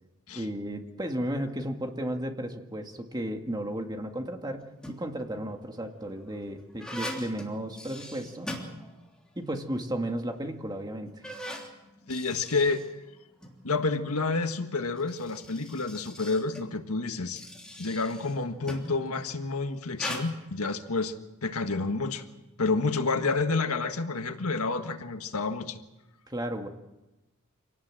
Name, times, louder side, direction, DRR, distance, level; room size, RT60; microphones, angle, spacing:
voice 1, 0.3-8.6 9.4-11.1 26.3-26.7, right 1 dB, 20° right, 4 dB, 2.0 m, -34 dB
sound 1, 4.6-5.2 5.9-9.3 9.6-9.7 10.5-10.6 11.0-13.6 14.8-19.0 19.9-20.2, left 1 dB, 5° left, 3.3 m, -41 dB
voice 2, 12.1-12.8 13.6-17.4 17.8-21.1 21.4-22.2 22.6-25.8, left 3 dB, 85° left, 7 dB, 1.7 m, -29 dB
26.5 x 18.5 x 7.7 m, 1.0 s
head